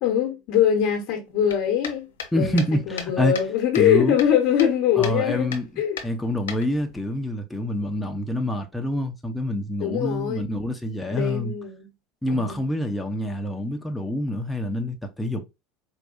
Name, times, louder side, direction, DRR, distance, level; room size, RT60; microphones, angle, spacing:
voice 1, 0.0-2.1 2.3-5.5 5.8-6.0 9.8-10.5 11.1-11.9 12.3-12.6, left 9 dB, 65° left, 1.0 m, -23 dB
sound 1, 1.5-3.5 3.7-4.8 5.0-5.2 5.5-5.7 6.0-7.0, left 7 dB, 85° left, 0.9 m, -35 dB
voice 2, 2.3-3.3 3.7-4.2 5.0-5.7 6.0-11.5 12.2-15.4, left 1 dB, 5° left, 0.8 m, -26 dB
4.6 x 2.6 x 2.5 m
hypercardioid pair, 85°, 0 cm